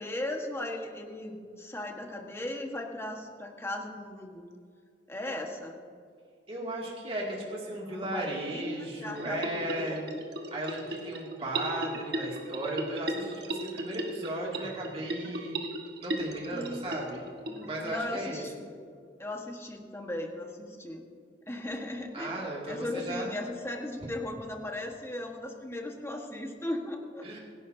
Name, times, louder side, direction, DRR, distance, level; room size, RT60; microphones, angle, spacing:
voice 1, 0.0-4.5 5.1-5.8 8.0-10.2 16.5-16.9 17.5-18.7 19.2-21.0 21.5-22.3 22.7-27.4, left 1 dB, 15° left, 2 dB, 1.4 m, -37 dB
voice 2, 6.5-10.0 10.5-15.6 16.0-17.2 17.6-18.4 22.1-23.3 27.2-27.4, right 1 dB, 35° right, -3 dB, 2.5 m, -35 dB
sound 1, 9.1-17.9, right 1 dB, 65° right, 1.5 m, -37 dB
26.0 x 11.5 x 2.8 m, 2.2 s
head